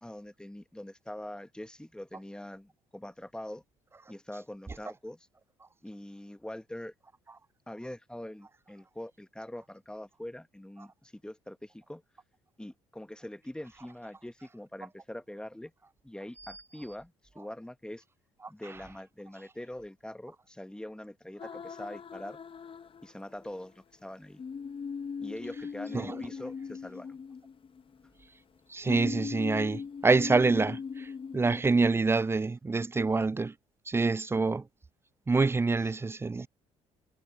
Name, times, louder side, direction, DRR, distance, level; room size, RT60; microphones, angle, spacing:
voice 1, 0.0-3.6 4.1-5.3 5.8-6.9 7.7-12.0 12.6-15.7 16.0-18.0 18.5-22.4 23.0-24.4 25.2-27.2 35.8-36.0, left 1 dB, 5° left, 1.7 m, -43 dB
sound 1, 21.4-23.5 24.4-28.1 28.9-31.6, left 6 dB, 35° left, 1.2 m, -39 dB
voice 2, 28.7-33.5 33.9-34.6 35.3-36.5, right 3 dB, 15° right, 0.5 m, -26 dB
hypercardioid pair, 55°, 16 cm